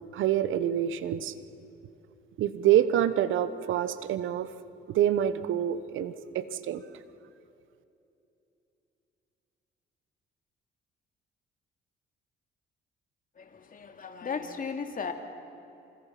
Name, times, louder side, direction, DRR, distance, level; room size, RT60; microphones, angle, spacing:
voice 1, 0.0-1.3 2.4-4.5 4.9-6.8, right 11 dB, 80° right, 13 dB, 1.2 m, -26 dB
voice 2, 13.3-15.1, left 5 dB, 45° left, 5 dB, 2.9 m, -36 dB
28.5 x 27.5 x 6.0 m, 3.0 s
cardioid pair, 90°, 20 cm